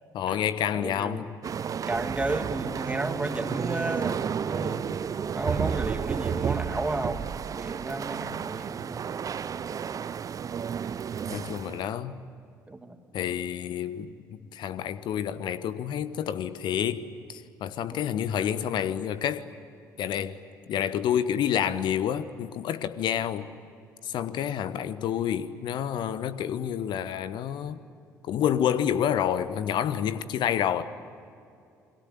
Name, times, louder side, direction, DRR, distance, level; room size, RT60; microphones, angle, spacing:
voice 1, 0.1-1.3 11.3-12.2 13.1-19.5 20.0-20.4 20.7-23.5 24.0-27.8 28.3-30.8, left 9 dB, 50° left, 1.2 m, -29 dB
voice 2, 0.7-1.3 1.6-4.9 5.4-9.1 12.7-13.0 17.9-18.0, right 2 dB, 15° right, 2.6 m, -33 dB
sound 1, 1.4-11.9, right 7 dB, 35° right, 0.7 m, -32 dB
28.5 x 23.0 x 8.5 m
figure-of-eight pair, 50°, 10 cm